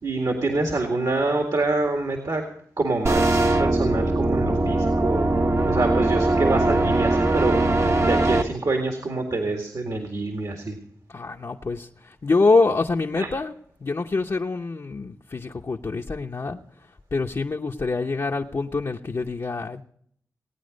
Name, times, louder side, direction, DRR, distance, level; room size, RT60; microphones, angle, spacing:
voice 1, 0.0-2.4 2.8-5.3 5.7-7.6 8.0-10.8 13.2-13.3, right 2 dB, 65° right, 3 dB, 2.0 m, -26 dB
sound 1, 3.0-8.4, right 2 dB, 45° right, 1.0 m, -21 dB
voice 2, 11.1-13.5 13.8-19.8, left 3 dB, 50° left, 1 dB, 0.8 m, -25 dB
18.5 x 9.2 x 5.2 m, 0.65 s
cardioid pair, 55°, 7 cm